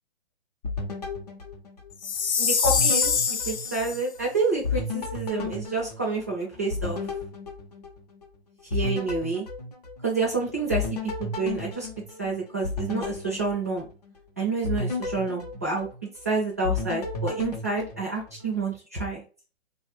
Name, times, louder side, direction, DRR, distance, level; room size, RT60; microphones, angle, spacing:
sound 1, 0.6-2.2 2.6-4.3 4.6-8.3 8.7-10.3 10.7-14.2 14.6-16.3 16.6-18.6, left 3 dB, 40° left, 0.5 m, -33 dB
Chime, 2.0-4.0, left 6 dB, 85° left, 0.7 m, -24 dB
voice 1, 2.4-3.1 3.5-7.0 8.7-9.4 10.0-10.8 11.2-11.9 12.2-13.8 14.4-15.9 16.2-19.2, right 3 dB, 15° right, -4 dB, 0.4 m, -28 dB
2.9 x 2.1 x 3.2 m, 0.35 s
hypercardioid pair, 175°, 33 cm